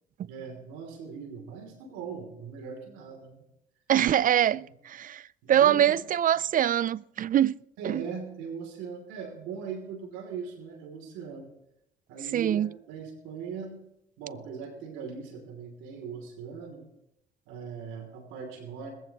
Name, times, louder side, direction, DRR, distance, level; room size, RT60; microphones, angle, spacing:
voice 1, 0.3-3.4 4.5-4.7 5.4-6.0 7.8-11.5 12.1-13.8 14.2-16.8 17.5-18.9, right 6 dB, 85° right, 2.9 m, -40 dB
voice 2, 3.9-5.2 5.5-7.6 7.8-8.0 12.3-12.7, right 10 dB, 45° right, 0.4 m, -24 dB
20.0 x 15.0 x 3.0 m
supercardioid pair, 65°, 19 cm